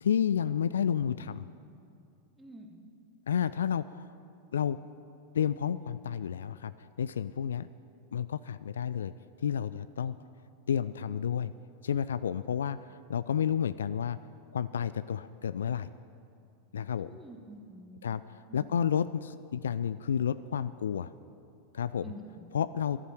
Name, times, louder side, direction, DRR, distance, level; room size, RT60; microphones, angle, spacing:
voice 1, 0.0-1.5 3.3-4.1 4.5-4.8 5.3-6.7 7.0-7.7 8.1-9.1 9.4-10.2 10.7-11.5 11.8-14.2 14.5-15.9 16.7-17.1 18.0-21.1 21.7-22.1 22.5-23.0, left 8 dB, 65° left, 15 dB, 0.3 m, -31 dB
voice 2, 2.4-2.8 10.1-10.2 17.0-18.1 18.5-18.7 22.0-22.5, right 1 dB, 10° right, 3 dB, 1.6 m, -48 dB
13.0 x 11.5 x 7.7 m, 2.5 s
figure-of-eight pair, 90°, 0 cm